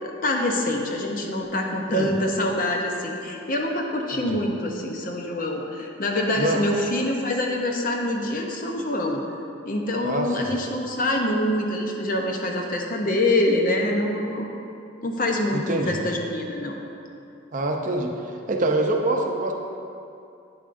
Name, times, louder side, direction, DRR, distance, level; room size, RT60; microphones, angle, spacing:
voice 1, 0.0-9.2 9.6-14.5 15.0-16.7, left 1 dB, 45° left, 1 dB, 0.7 m, -25 dB
voice 2, 10.0-10.5 15.5-16.0 17.5-19.5, right 2 dB, 40° right, 2 dB, 0.6 m, -25 dB
9.4 x 7.1 x 2.6 m, 2.6 s
head